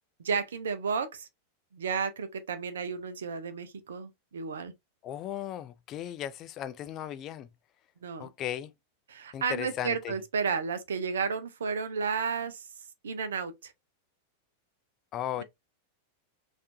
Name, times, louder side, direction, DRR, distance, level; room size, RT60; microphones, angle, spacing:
voice 1, 0.2-1.3 1.7-4.7 8.0-8.3 9.1-12.7 13.0-13.7 15.4-15.5, right 5 dB, 65° right, 0.7 m, -32 dB
voice 2, 5.0-7.5 8.2-8.7 9.3-10.1 15.1-15.4, left 11 dB, 35° left, 0.4 m, -36 dB
4.3 x 2.6 x 2.6 m
figure-of-eight pair, 90°, 0 cm